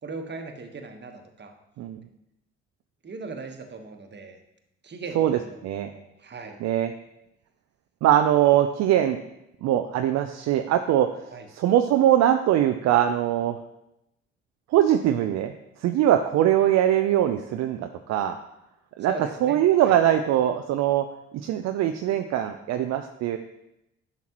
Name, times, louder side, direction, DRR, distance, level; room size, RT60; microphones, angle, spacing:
voice 1, 0.0-1.5 3.0-4.4 4.8-6.6 11.3-11.5 19.1-19.9, right 4 dB, 35° right, 5 dB, 1.3 m, -38 dB
voice 2, 5.1-5.9 6.6-6.9 8.0-9.2 9.6-11.1 11.5-13.6 14.7-15.5 15.8-18.3 19.0-19.1 19.4-21.0 21.4-23.4, right 11 dB, 55° right, 7 dB, 0.5 m, -22 dB
10.5 x 5.8 x 3.0 m, 0.87 s
hypercardioid pair, 45°, 31 cm